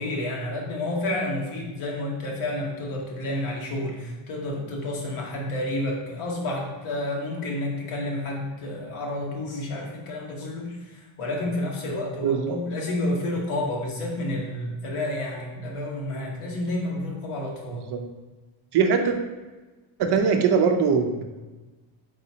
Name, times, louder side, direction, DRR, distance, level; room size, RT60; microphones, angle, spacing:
voice 1, 0.0-17.9, left 1 dB, 80° left, -1 dB, 1.2 m, -30 dB
voice 2, 12.2-12.6 17.7-18.0 18.7-19.1 20.0-21.2, right 6 dB, 55° right, 5 dB, 0.6 m, -21 dB
4.0 x 4.0 x 2.7 m, 1.2 s
cardioid pair, 130°, 49 cm